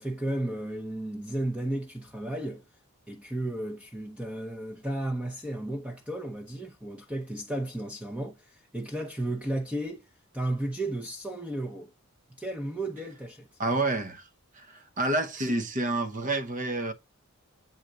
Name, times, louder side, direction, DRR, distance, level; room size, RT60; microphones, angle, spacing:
voice 1, 0.0-2.6 3.1-10.1 10.3-11.9 12.4-13.5, right 1 dB, 5° right, 0.7 m, -33 dB
voice 2, 13.6-14.3 14.5-16.9, right 2 dB, 35° right, 0.9 m, -29 dB
7.9 x 4.0 x 5.1 m
head